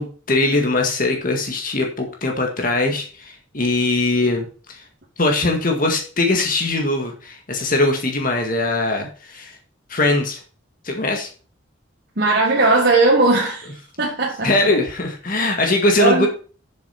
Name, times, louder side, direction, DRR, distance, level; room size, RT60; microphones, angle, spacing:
voice 1, 0.0-4.8 5.2-9.6 9.9-10.4 10.8-11.3 14.4-16.3, left 2 dB, 45° left, 1.8 m, -21 dB
voice 2, 12.2-13.7 14.0-14.5 16.0-16.3, right 2 dB, 50° right, 1.9 m, -17 dB
7.7 x 7.1 x 5.7 m
head